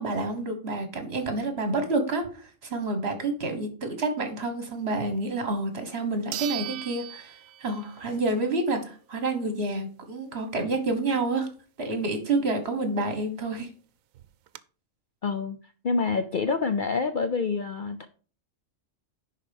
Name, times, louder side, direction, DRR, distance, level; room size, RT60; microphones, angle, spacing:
voice 1, 0.0-7.3 7.6-11.5 11.8-13.7, right 2 dB, 50° right, 7 dB, 1.7 m, -28 dB
sound 1, 5.5-5.6 6.3-8.1 8.5-8.6 13.2-13.3 13.5-13.6 14.1-14.6, right 13 dB, 90° right, 1.0 m, -37 dB
voice 2, 15.2-15.6 15.8-18.1, left 4 dB, 55° left, 9 dB, 0.6 m, -27 dB
10.5 x 4.2 x 5.3 m, 0.39 s
omnidirectional pair, 1.4 m